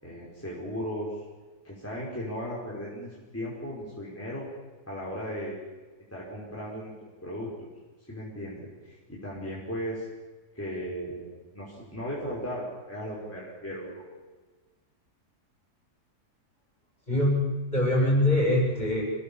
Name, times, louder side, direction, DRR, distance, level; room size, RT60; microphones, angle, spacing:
voice 1, 0.0-1.2 1.6-4.4 4.9-5.6 6.1-6.9 7.2-7.5 8.1-10.1 10.6-11.3 11.5-14.0, equal, 10° left, -6 dB, 5.5 m, -36 dB
voice 2, 17.1-19.0, left 1 dB, 25° left, -2 dB, 7.9 m, -23 dB
27.5 x 20.0 x 7.3 m, 1.3 s
omnidirectional pair, 1.8 m